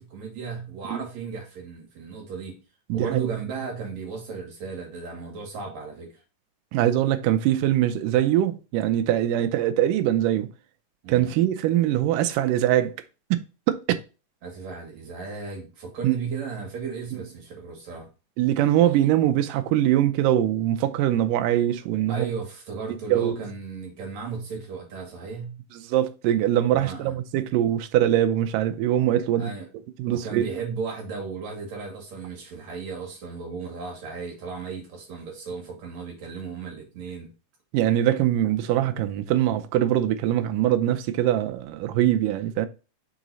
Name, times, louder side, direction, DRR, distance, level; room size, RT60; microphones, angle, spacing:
voice 1, 0.0-2.6 2.9-6.1 11.0-11.4 14.4-18.1 22.1-25.6 26.7-27.2 29.4-29.7 30.1-37.3, right 5 dB, 60° right, 2.8 m, -35 dB
voice 2, 2.9-3.3 6.7-10.5 11.1-13.0 13.3-13.4 13.7-14.0 16.0-16.2 18.4-22.3 23.1-23.4 25.8-29.5 30.0-30.4 37.7-42.7, right 12 dB, 80° right, 2.2 m, -22 dB
6.1 x 3.9 x 4.0 m
omnidirectional pair, 3.9 m